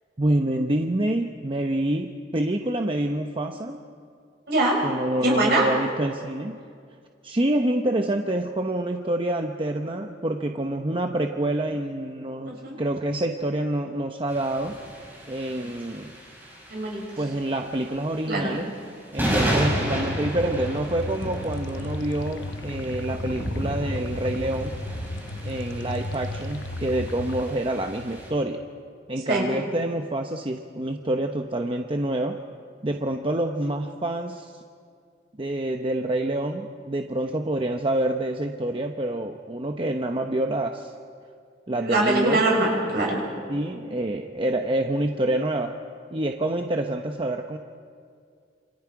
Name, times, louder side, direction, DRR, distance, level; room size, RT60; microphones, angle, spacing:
voice 1, 0.2-3.8 4.8-6.6 7.2-14.8 15.3-16.2 17.2-18.7 19.1-24.7 25.4-28.6 29.1-32.4 32.8-34.5 35.4-40.9 41.7-42.4 43.5-45.8 46.1-47.6, right 1 dB, 30° right, 4 dB, 0.9 m, -27 dB
voice 2, 5.2-5.7 12.5-12.8 15.6-15.7 16.7-17.0 18.3-18.5 29.3-29.5 41.8-43.2, right 2 dB, 60° right, -2 dB, 6.8 m, -23 dB
sound 1, 14.3-28.3, equal, 10° right, 5.3 m, -33 dB
sound 2, 19.4-27.4, left 2 dB, 80° left, 0.9 m, -35 dB
28.0 x 27.0 x 4.8 m, 2.2 s
head